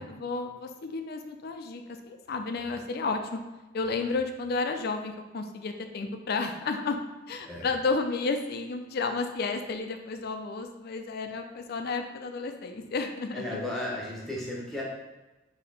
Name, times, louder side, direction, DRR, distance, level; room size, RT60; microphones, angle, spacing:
voice 1, 0.0-3.4 3.7-7.0 7.3-13.6, left 4 dB, 50° left, 6 dB, 0.4 m, -32 dB
voice 2, 13.3-14.8, left 1 dB, ahead, -5 dB, 0.9 m, -34 dB
4.2 x 2.8 x 4.0 m, 1.1 s
head